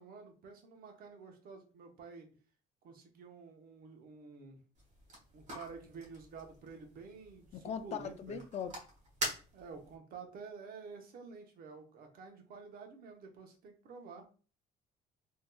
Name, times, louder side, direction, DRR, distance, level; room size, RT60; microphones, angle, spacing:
voice 1, 0.0-2.3 2.8-4.6 5.3-8.4 9.5-14.3, right 4 dB, 60° right, 0.9 m, -50 dB
sound 1, 4.7-10.0, right 1 dB, 45° right, 1.4 m, -45 dB
voice 2, 7.5-8.7, left 7 dB, 40° left, 0.4 m, -40 dB
3.4 x 2.8 x 2.3 m
cardioid pair, 110°, 17 cm